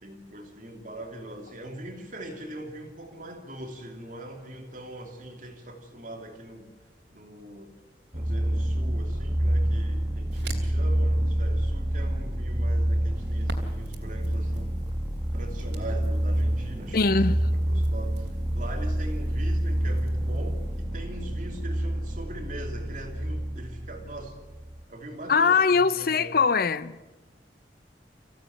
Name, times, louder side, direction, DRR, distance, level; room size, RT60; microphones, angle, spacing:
voice 1, 0.0-6.7 7.1-7.7 8.1-14.7 15.3-17.2 17.5-18.3 18.5-24.3 24.9-26.3, right 1 dB, 50° right, 2.9 m, -41 dB
sound 1, 8.1-24.8, right 1 dB, 25° right, 2.6 m, -27 dB
Crackle, 9.8-20.8, right 2 dB, 80° right, 3.5 m, -47 dB
voice 2, 16.9-17.5 25.3-27.0, left 5 dB, 55° left, 0.8 m, -22 dB
26.0 x 16.0 x 9.4 m
head